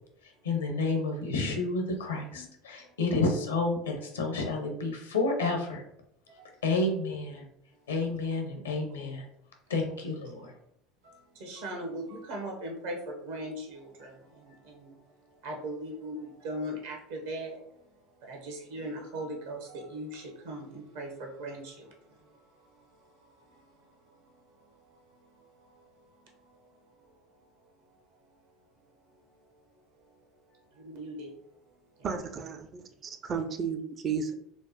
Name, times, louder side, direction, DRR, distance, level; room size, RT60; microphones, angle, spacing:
voice 1, 0.4-5.8 6.6-7.5 7.9-9.3 9.7-10.5, left 3 dB, 80° left, 2 dB, 0.7 m, -30 dB
voice 2, 6.3-6.6 7.7-7.8 10.1-10.5 11.0-27.1 27.9-28.0 28.2-28.4 29.1-29.2 30.1-30.2 30.5-31.3 32.0-32.1, right 1 dB, 70° right, 1 dB, 0.9 m, -41 dB
voice 3, 32.0-34.3, right 6 dB, 35° right, 7 dB, 0.4 m, -33 dB
4.5 x 2.1 x 2.8 m, 0.75 s
figure-of-eight pair, 70°, 0 cm